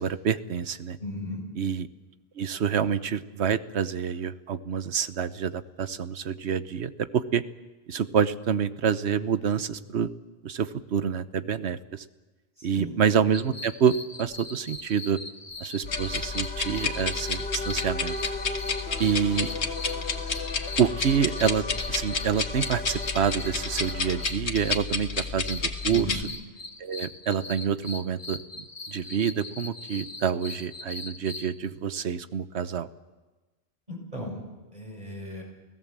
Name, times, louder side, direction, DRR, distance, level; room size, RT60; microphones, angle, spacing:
voice 1, 0.0-1.0 1.6-1.9 2.4-7.4 7.9-10.1 10.4-12.0 12.6-15.2 15.6-18.2 19.0-19.5 20.8-26.2 26.8-32.9, right 7 dB, 80° right, 13 dB, 1.2 m, -27 dB
voice 2, 1.0-1.4 12.6-13.0 25.9-26.2 33.9-34.4 34.7-35.4, left 1 dB, 40° right, -1 dB, 7.7 m, -36 dB
sound 1, 13.3-31.5, left 3 dB, 40° left, 1.5 m, -41 dB
sound 2, 15.8-26.2, left 4 dB, 90° left, 1.8 m, -31 dB
sound 3, 15.9-24.3, left 3 dB, 75° left, 2.3 m, -37 dB
29.0 x 17.5 x 7.4 m, 1.2 s
omnidirectional pair, 1.1 m